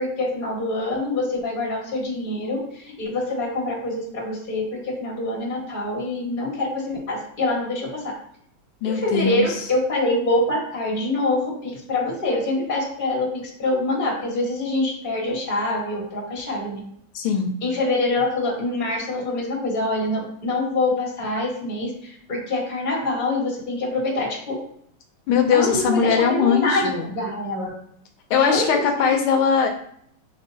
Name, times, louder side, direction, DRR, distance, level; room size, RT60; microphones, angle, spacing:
voice 1, 0.0-8.0 8.8-13.3 13.6-16.8 17.6-24.5 25.5-27.7 28.3-29.1, left 2 dB, 25° left, -2 dB, 1.3 m, -25 dB
voice 2, 8.8-9.7 17.1-17.5 25.3-27.1 28.3-29.7, left 6 dB, 80° left, 3 dB, 1.4 m, -20 dB
5.2 x 3.7 x 2.7 m, 0.65 s
omnidirectional pair, 2.4 m